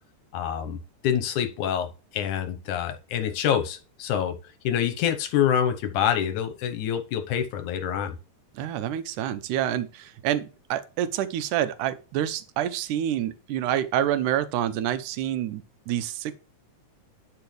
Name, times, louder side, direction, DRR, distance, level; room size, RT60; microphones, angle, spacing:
voice 1, 0.3-1.9 2.1-4.4 4.6-8.2, left 9 dB, 80° left, 2.5 m, -26 dB
voice 2, 8.5-16.3, right 11 dB, 85° right, 2.3 m, -27 dB
11.5 x 4.8 x 3.3 m
omnidirectional pair, 3.5 m